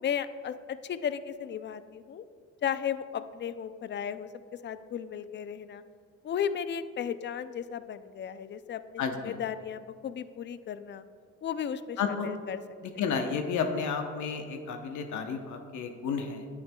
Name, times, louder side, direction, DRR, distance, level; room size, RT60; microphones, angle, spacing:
voice 1, 0.0-2.2 2.6-4.3 4.6-5.8 6.2-11.0 11.4-12.6, left 8 dB, 40° left, 13 dB, 0.4 m, -35 dB
voice 2, 9.0-9.4 12.0-12.3 12.8-16.5, left 6 dB, 75° left, 5 dB, 0.9 m, -32 dB
9.6 x 8.6 x 2.2 m, 2.2 s
cardioid pair, 90°, 30 cm